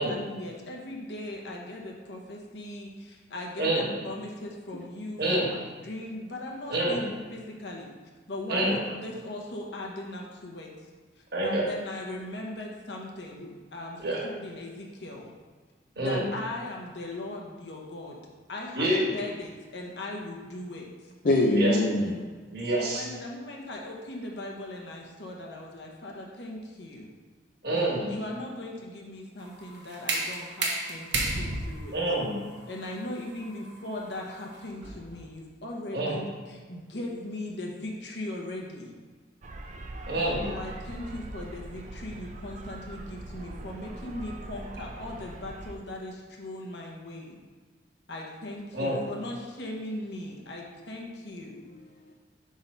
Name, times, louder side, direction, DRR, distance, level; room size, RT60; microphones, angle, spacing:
voice 1, 0.0-7.9 8.3-10.7 11.2-15.3 16.0-18.2 18.5-21.1 22.7-27.1 28.1-32.0 32.7-38.9 40.4-47.4 48.1-51.6, left 1 dB, 70° left, 1.1 m, -39 dB
voice 2, 3.6-3.9 5.2-5.5 6.7-7.0 8.5-8.8 11.3-11.7 14.0-14.2 16.0-16.2 18.7-19.1 21.5-21.7 22.5-23.1 27.6-28.1 31.9-32.3 35.9-36.2 40.1-40.5 48.7-49.0, right 1 dB, 60° right, 1.5 m, -27 dB
voice 3, 21.2-22.5 39.8-39.9 51.5-52.1, left 1 dB, 50° left, 0.5 m, -26 dB
sound 1, 29.4-35.2, right 2 dB, 80° right, 1.1 m, -33 dB
sound 2, 39.4-45.7, right 2 dB, 40° right, 0.4 m, -41 dB
5.2 x 3.9 x 5.6 m
head